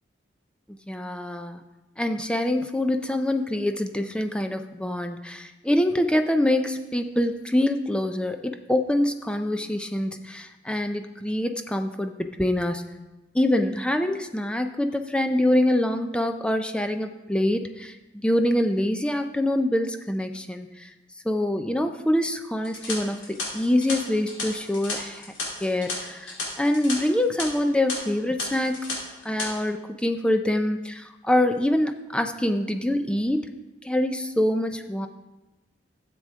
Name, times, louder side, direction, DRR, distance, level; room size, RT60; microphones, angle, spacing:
voice 1, 0.7-1.6 2.0-12.8 13.3-18.0 18.2-20.9 21.2-25.3 25.6-28.9 29.2-33.5 33.8-35.1, left 1 dB, 5° left, 6 dB, 0.4 m, -25 dB
sound 1, 22.6-26.9 27.2-27.4 27.9-28.0 28.4-28.9 29.2-29.5, left 3 dB, 75° left, 3.0 m, -33 dB
12.5 x 7.7 x 3.6 m, 1.1 s
head